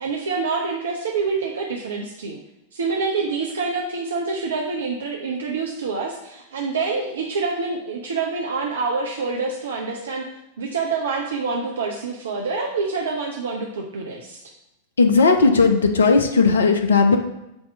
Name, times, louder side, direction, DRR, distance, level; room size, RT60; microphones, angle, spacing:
voice 1, 0.0-2.4 2.7-10.3 10.6-14.5, right 4 dB, 65° right, -1 dB, 0.7 m, -26 dB
voice 2, 15.0-17.2, left 4 dB, 70° left, 6 dB, 0.8 m, -16 dB
7.9 x 2.9 x 5.4 m, 0.90 s
figure-of-eight pair, 90°, 0 cm